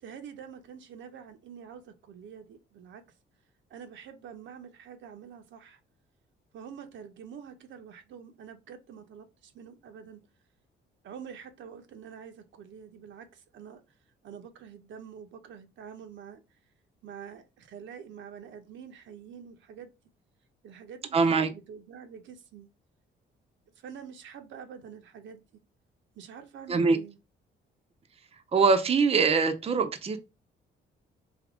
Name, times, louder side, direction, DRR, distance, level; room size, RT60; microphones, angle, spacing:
voice 1, 0.0-3.0 3.7-5.8 6.5-10.2 11.0-13.8 14.2-16.4 17.0-19.9 20.6-22.7 23.8-25.4 26.2-27.2, right 7 dB, 70° right, 0.7 m, -46 dB
voice 2, 21.1-21.5 26.7-27.0 28.5-30.2, right 4 dB, 30° right, 0.6 m, -23 dB
3.5 x 2.8 x 3.6 m
cardioid pair, 90°, 20 cm